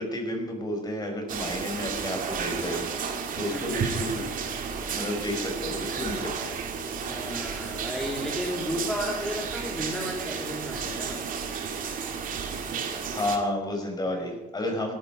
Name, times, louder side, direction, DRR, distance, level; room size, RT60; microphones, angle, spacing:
voice 1, 0.0-3.1 3.3-4.2 4.9-6.5 12.6-14.9, left 1 dB, 25° left, 2 dB, 5.6 m, -31 dB
sound 1, 1.3-13.4, right 6 dB, 55° right, 2.5 m, -32 dB
voice 2, 3.5-3.9 7.1-11.2, equal, ahead, -2 dB, 2.7 m, -33 dB
17.5 x 14.0 x 5.3 m, 1.1 s
cardioid pair, 110°, 17 cm